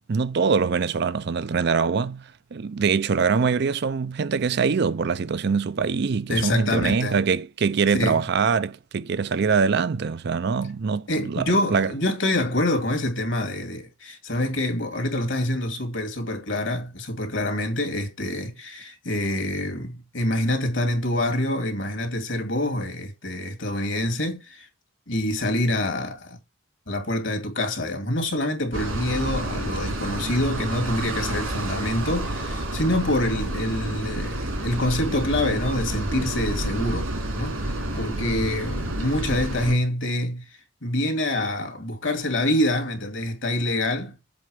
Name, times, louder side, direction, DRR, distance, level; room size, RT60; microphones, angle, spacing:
voice 1, 0.1-2.2 2.5-11.9, right 5 dB, 55° right, 0.5 m, -23 dB
voice 2, 6.3-7.2 7.9-8.3 11.1-24.7 25.1-26.4 26.9-37.1 37.4-44.1, left 1 dB, 65° left, 2.6 m, -26 dB
sound 1, 28.7-39.7, right 1 dB, 90° right, 3.1 m, -29 dB
7.7 x 3.8 x 5.0 m
head